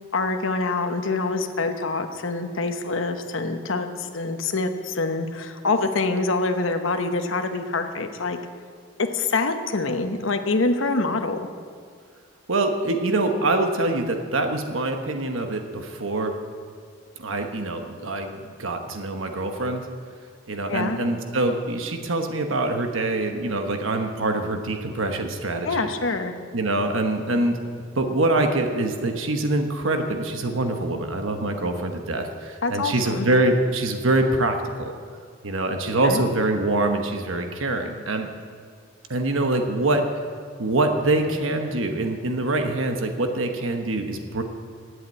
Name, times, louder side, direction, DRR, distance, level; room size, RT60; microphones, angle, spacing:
voice 1, 0.1-8.4 9.0-11.4 20.7-21.0 25.6-26.3 32.6-33.3 36.0-36.2, left 3 dB, 75° left, 6 dB, 1.0 m, -25 dB
voice 2, 12.5-16.4 17.2-19.9 20.5-25.9 26.5-27.6 27.9-34.9 35.4-38.3 39.1-40.1 40.6-44.4, right 2 dB, 80° right, 5 dB, 1.1 m, -24 dB
11.5 x 8.1 x 9.0 m, 2.1 s
head